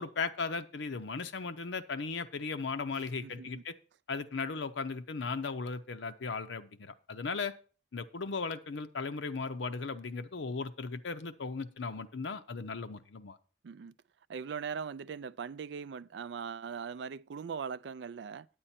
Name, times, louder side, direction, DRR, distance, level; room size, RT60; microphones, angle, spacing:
voice 1, 0.0-3.7 4.1-7.5 7.9-13.4, left 4 dB, 85° left, 0.7 m, -37 dB
voice 2, 3.2-3.6 13.6-13.9 14.3-18.5, right 6 dB, 75° right, 0.4 m, -40 dB
8.8 x 8.7 x 4.3 m
head